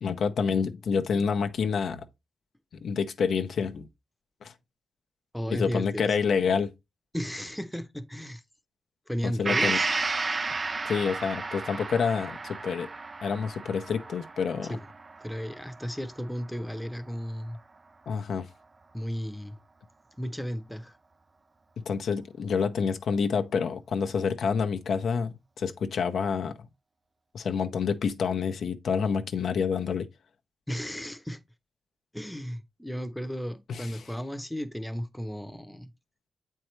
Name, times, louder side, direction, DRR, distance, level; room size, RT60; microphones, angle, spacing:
voice 1, 0.0-2.0 2.8-3.9 4.4-4.5 5.5-6.7 9.2-9.8 10.8-12.9 13.2-14.8 18.1-18.5 21.8-26.7 27.3-30.1 33.7-33.9, left 6 dB, 70° left, 0.7 m, -28 dB
voice 2, 5.3-6.2 7.1-8.4 9.1-9.9 14.7-14.9 15.2-17.6 18.9-19.6 20.2-20.9 30.7-31.4 32.1-35.9, equal, 5° left, 0.8 m, -34 dB
Gong, 9.4-17.1 17.5-17.6, right 3 dB, 35° right, 0.3 m, -33 dB
7.8 x 4.6 x 3.1 m
cardioid pair, 65°, 0 cm